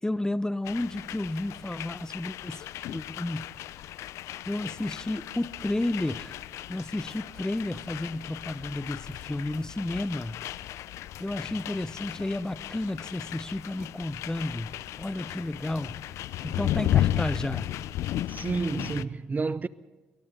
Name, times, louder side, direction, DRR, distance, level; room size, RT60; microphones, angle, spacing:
voice 1, 0.0-3.7 4.4-6.4 6.7-10.4 11.2-16.1 16.4-17.7, left 1 dB, 10° left, 1.0 m, -32 dB
sound 1, 0.6-19.1, left 12 dB, 70° left, 0.7 m, -34 dB
voice 2, 18.3-19.7, right 4 dB, 30° right, 0.8 m, -30 dB
27.0 x 24.0 x 4.0 m
hypercardioid pair, 50°, 5 cm